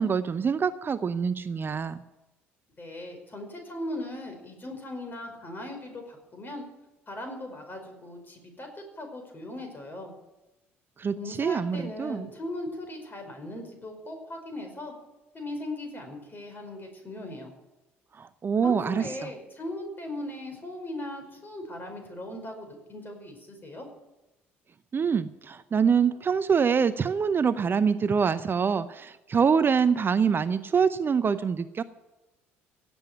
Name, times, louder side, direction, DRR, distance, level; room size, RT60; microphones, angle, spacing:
voice 1, 0.0-2.0 11.0-12.3 18.2-19.0 24.9-31.8, right 6 dB, 35° right, 14 dB, 0.7 m, -25 dB
voice 2, 2.8-6.6 7.1-8.7 9.0-10.1 11.2-14.9 15.3-17.5 18.6-23.9, left 1 dB, 30° left, 4 dB, 5.2 m, -38 dB
17.0 x 8.0 x 9.5 m, 1.0 s
figure-of-eight pair, 55°, 7 cm